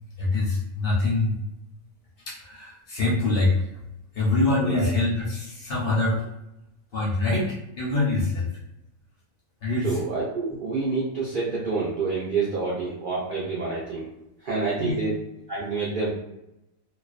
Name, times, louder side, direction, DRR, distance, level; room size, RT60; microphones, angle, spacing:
voice 1, 0.2-1.4 2.3-3.6 4.1-6.3 6.9-8.5 9.6-10.0 14.8-15.0, left 2 dB, 55° left, -6 dB, 0.7 m, -24 dB
voice 2, 4.6-4.9 9.8-14.0 14.4-15.1 15.5-16.1, right 4 dB, 65° right, -6 dB, 0.5 m, -28 dB
2.4 x 2.1 x 2.4 m, 0.88 s
omnidirectional pair, 1.4 m